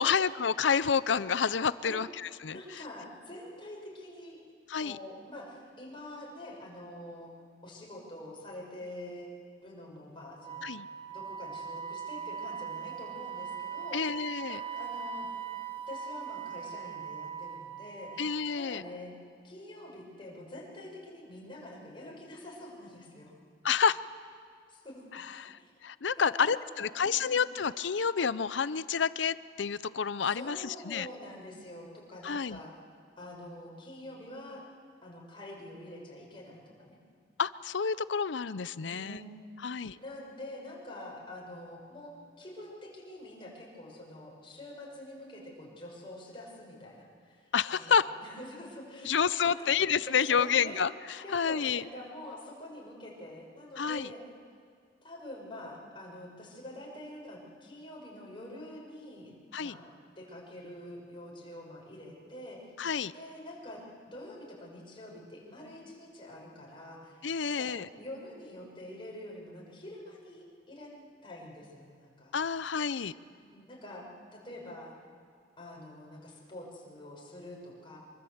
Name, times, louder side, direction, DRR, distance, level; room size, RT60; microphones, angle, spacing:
voice 1, 0.0-2.6 4.7-5.0 10.6-10.9 13.9-14.6 18.2-18.8 23.6-24.0 25.1-31.1 32.2-32.6 37.4-39.2 39.6-40.0 47.5-48.1 49.0-50.9 51.3-51.8 53.8-54.1 59.5-59.8 62.8-63.1 67.2-67.9 72.3-73.1, left 6 dB, 75° left, 16 dB, 0.6 m, -29 dB
voice 2, 2.5-4.4 4.7-7.3 7.6-9.3 9.6-10.7 11.0-14.2 14.5-15.3 15.9-18.3 18.6-19.2 19.4-23.3 24.7-25.2 25.6-25.7 26.2-27.5 30.2-32.7 33.2-34.6 35.0-37.0 38.9-50.9 51.2-54.2 55.0-59.3 59.6-59.9 60.2-62.7 63.1-70.9 71.2-72.3 73.4-74.1 74.3-75.0 75.6-78.0, left 1 dB, 25° left, -2 dB, 6.2 m, -46 dB
Wind instrument woodwind instrument, 10.4-18.7, right 7 dB, 25° right, 1.2 m, -40 dB
25.0 x 24.0 x 8.0 m, 2.1 s
head